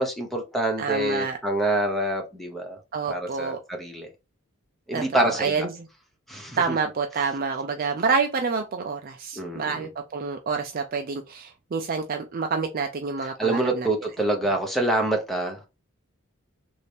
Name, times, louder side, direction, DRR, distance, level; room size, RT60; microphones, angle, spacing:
voice 1, 0.0-2.8 3.1-4.1 4.9-5.7 6.3-6.8 9.4-9.9 13.2-15.6, right 1 dB, ahead, 0.6 m, -26 dB
voice 2, 0.8-1.4 2.9-3.6 4.9-5.7 6.6-13.9, right 5 dB, 40° right, 0.4 m, -28 dB
3.2 x 2.7 x 3.2 m
head